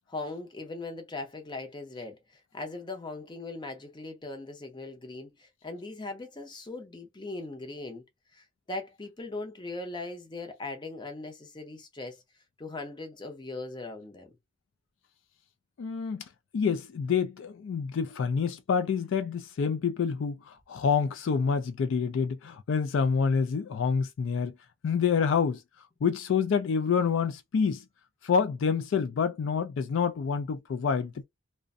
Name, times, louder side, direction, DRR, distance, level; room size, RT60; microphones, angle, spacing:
voice 1, 0.1-8.0 8.3-12.2 12.6-14.3, left 2 dB, 25° left, 0.6 m, -39 dB
voice 2, 15.8-16.2 16.5-24.5 24.8-25.6 26.0-27.8 28.2-31.2, left 6 dB, 70° left, 0.3 m, -27 dB
2.5 x 2.1 x 2.4 m
head